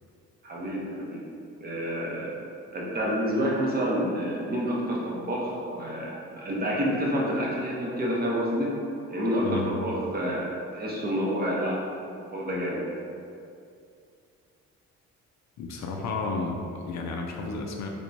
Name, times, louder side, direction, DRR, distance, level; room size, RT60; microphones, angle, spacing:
voice 1, 0.4-1.2 1.6-2.4 2.7-8.7 9.1-11.8 12.2-12.9, equal, 30° right, -4 dB, 0.8 m, -28 dB
voice 2, 15.6-17.9, left 3 dB, 65° left, 1 dB, 0.4 m, -32 dB
3.4 x 3.0 x 2.6 m, 2.4 s
cardioid pair, 90°, 30 cm